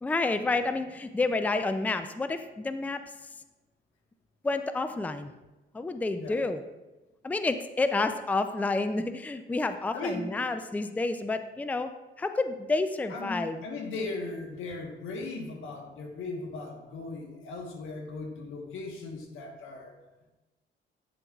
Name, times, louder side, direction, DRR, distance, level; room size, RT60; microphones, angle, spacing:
voice 1, 0.0-3.0 4.4-5.3 5.7-6.6 7.2-11.9 12.2-13.6, left 3 dB, 10° left, 9 dB, 0.4 m, -29 dB
voice 2, 9.9-10.3 13.1-19.9, left 3 dB, 90° left, 3 dB, 1.2 m, -37 dB
9.4 x 6.8 x 2.4 m, 1.1 s
cardioid pair, 90°, 20 cm